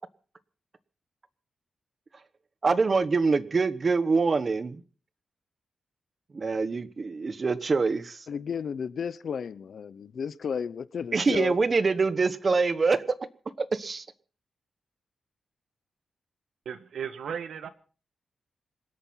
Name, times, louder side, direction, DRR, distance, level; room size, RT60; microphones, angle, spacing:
voice 1, 2.6-4.8 6.3-8.2 11.1-13.0 13.7-14.0, right 4 dB, 35° right, 1.1 m, -25 dB
voice 2, 8.3-11.6, left 7 dB, 60° left, 0.7 m, -33 dB
voice 3, 16.7-17.7, right 7 dB, 80° right, 1.6 m, -35 dB
26.0 x 8.7 x 5.6 m
wide cardioid pair, 160°, 0 cm